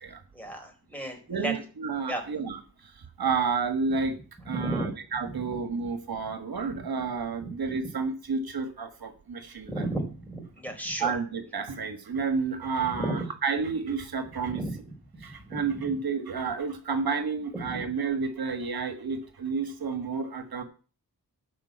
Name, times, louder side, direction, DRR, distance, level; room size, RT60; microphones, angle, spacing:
voice 1, 0.3-1.5 2.1-2.2 4.4-4.9 5.4-5.5 7.4-7.5 9.7-11.2 12.8-13.2 14.5-14.7 15.1-15.6 17.7-17.8, right 1 dB, 5° left, 3 dB, 4.4 m, -34 dB
voice 2, 1.3-4.2 4.4-9.8 11.0-14.6 15.2-20.6, right 5 dB, 75° right, 8 dB, 1.6 m, -31 dB
12.5 x 5.2 x 8.5 m, 0.37 s
wide cardioid pair, 75°, 37 cm